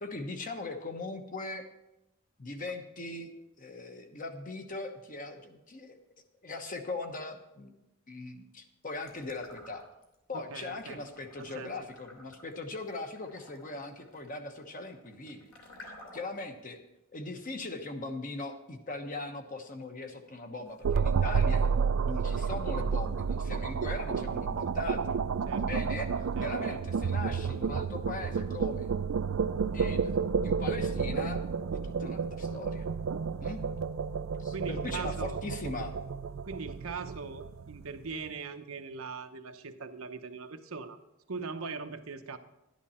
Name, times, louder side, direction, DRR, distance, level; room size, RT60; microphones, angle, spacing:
voice 1, 0.0-1.7 2.4-3.3 3.6-6.0 6.4-7.7 8.1-9.8 10.3-15.5 16.1-16.8 17.1-21.7 22.0-25.2 25.5-26.1 26.4-28.9 29.7-30.2 30.4-31.4 31.8-32.9 33.4-33.6 34.4-36.0, left 2 dB, 40° left, 5 dB, 1.1 m, -40 dB
sound 1, 9.0-10.1 10.5-16.5, left 1 dB, 70° left, 2.9 m, -53 dB
voice 2, 10.3-11.0 11.4-11.7 25.5-25.8 26.4-26.8 34.5-35.4 36.4-41.0 41.3-42.4, right 4 dB, 85° right, 7 dB, 0.9 m, -40 dB
sound 2, 20.8-38.1, right 5 dB, 70° right, 0.4 m, -31 dB
11.5 x 10.5 x 4.3 m, 0.93 s
head